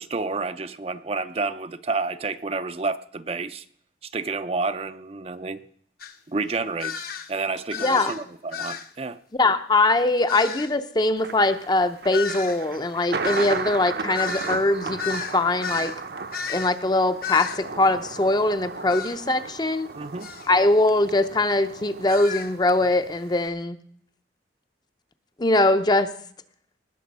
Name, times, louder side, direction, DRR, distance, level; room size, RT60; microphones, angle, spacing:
voice 1, 0.0-3.6 4.1-5.6 6.3-7.0 7.3-9.2 20.0-20.3, right 3 dB, 35° right, 11 dB, 0.5 m, -29 dB
sound 1, 6.0-6.1 6.8-7.3 7.7-8.2 8.5-8.9 10.3-10.7 12.1-16.0 16.3-16.8 17.2-17.6 18.9-19.2 20.2-20.5 22.1-22.5, left 6 dB, 55° left, 0.9 m, -33 dB
voice 2, 7.8-8.1 9.4-15.9 16.5-19.9 20.5-23.8 25.4-26.1, left 2 dB, 25° left, 10 dB, 0.6 m, -22 dB
Thunder, 11.2-23.5, right 4 dB, 60° right, 0.8 m, -35 dB
19.0 x 6.9 x 5.4 m, 0.62 s
head